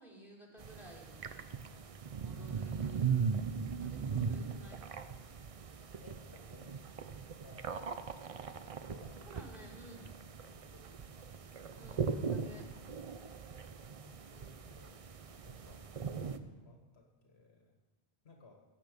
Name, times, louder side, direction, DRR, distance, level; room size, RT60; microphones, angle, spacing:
voice 1, 0.0-1.5 2.2-3.4 3.8-4.8 9.3-10.1 11.8-12.7, right 1 dB, 40° left, -2 dB, 3.1 m, -54 dB
sound 1, 0.6-16.4, right 6 dB, 40° right, 0.6 m, -39 dB
voice 2, 6.0-6.8 7.1-9.3 9.6-9.9 10.5-11.3 14.1-15.0 15.4-15.9 16.2-17.8 18.2-18.6, left 3 dB, 90° left, 1 dB, 1.9 m, -60 dB
15.5 x 8.9 x 5.1 m, 1.2 s
omnidirectional pair, 1.0 m